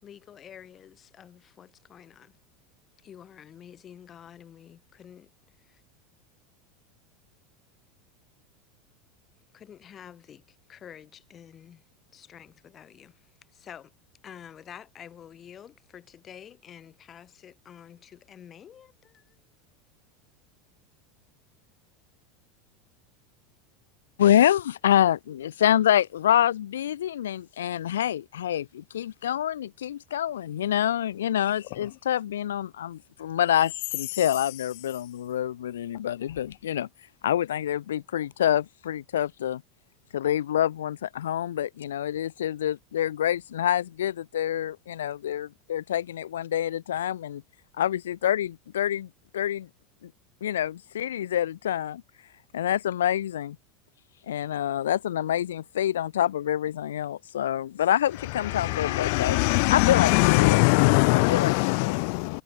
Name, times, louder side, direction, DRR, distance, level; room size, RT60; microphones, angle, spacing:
voice 1, 0.0-2.4 3.0-5.3 5.7-5.8 9.5-11.8 12.1-13.2 13.5-13.9 14.2-19.3, left 9 dB, 35° left, 4.0 m, -48 dB
voice 2, 24.2-36.9 37.2-39.6 40.1-47.4 47.8-49.1 49.3-49.7 50.4-52.0 52.5-53.6 54.3-60.6 61.1-62.0, left 11 dB, 80° left, 1.2 m, -26 dB
voice 3, 58.4-62.4, left 38 dB, 60° left, 0.4 m, -22 dB
hypercardioid pair, 85°, 0 cm